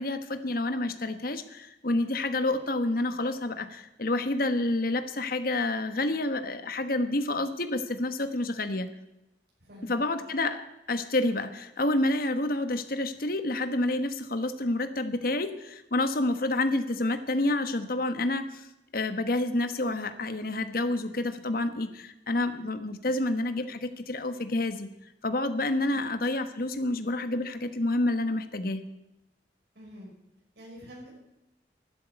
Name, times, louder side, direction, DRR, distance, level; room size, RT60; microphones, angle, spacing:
voice 1, 0.0-8.9 9.8-18.6 18.9-24.9 25.2-28.8, left 2 dB, 55° left, 10 dB, 1.3 m, -29 dB
voice 2, 9.6-10.0 25.8-26.1 29.7-30.1 30.6-31.1, equal, 65° right, -4 dB, 5.9 m, -46 dB
12.0 x 12.0 x 9.1 m, 0.92 s
head